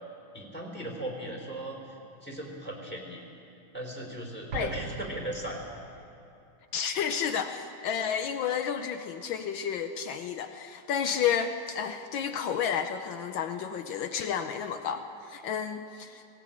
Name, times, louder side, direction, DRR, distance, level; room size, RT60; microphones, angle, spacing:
voice 1, 0.3-1.8 2.2-3.2 3.7-5.6, right 1 dB, 5° left, 0 dB, 3.6 m, -37 dB
Explosion, 4.5-6.1, right 5 dB, 50° right, 0.9 m, -40 dB
voice 2, 6.7-16.3, left 8 dB, 75° left, 7 dB, 1.5 m, -31 dB
18.0 x 18.0 x 8.7 m, 2.8 s
omnidirectional pair, 2.2 m